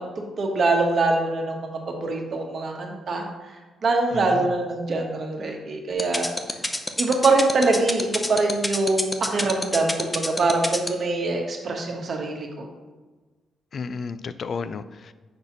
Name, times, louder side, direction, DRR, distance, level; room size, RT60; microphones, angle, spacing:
voice 1, 0.0-3.3 3.8-6.3 7.0-12.7, right 3 dB, 55° right, 2 dB, 1.2 m, -24 dB
voice 2, 4.1-4.5 13.7-15.1, left 5 dB, 55° left, 13 dB, 0.3 m, -32 dB
sound 1, 6.0-10.9, left 2 dB, 20° left, 0.7 m, -25 dB
5.2 x 4.1 x 5.9 m, 1.3 s
supercardioid pair, 50°, 0 cm